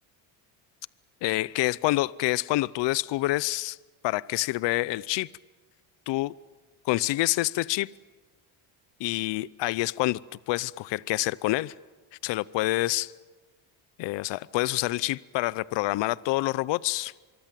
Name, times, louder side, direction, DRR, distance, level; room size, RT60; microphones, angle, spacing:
voice 1, 1.2-3.8 4.0-5.3 6.1-6.3 6.9-7.9 9.0-10.2 10.5-11.7 12.2-13.1 14.0-17.1, left 19 dB, 60° left, 21 dB, 0.7 m, -27 dB
25.0 x 23.0 x 7.6 m, 1.3 s
supercardioid pair, 90°, 49 cm